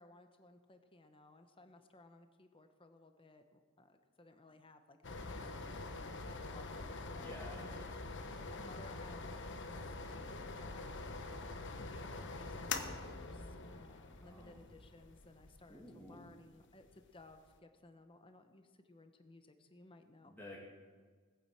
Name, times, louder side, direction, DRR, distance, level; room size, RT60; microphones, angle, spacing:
voice 1, 0.0-7.7 8.5-9.3 9.6-9.8 10.1-11.6 11.9-20.3, left 2 dB, 25° left, 7 dB, 1.0 m, -60 dB
sound 1, 5.0-17.5, left 3 dB, 55° left, 1.2 m, -45 dB
voice 2, 7.2-7.9 8.3-8.5 14.2-14.6 15.7-16.2 20.2-20.6, left 1 dB, 10° left, -5 dB, 2.5 m, -52 dB
18.5 x 10.0 x 7.6 m, 1.5 s
head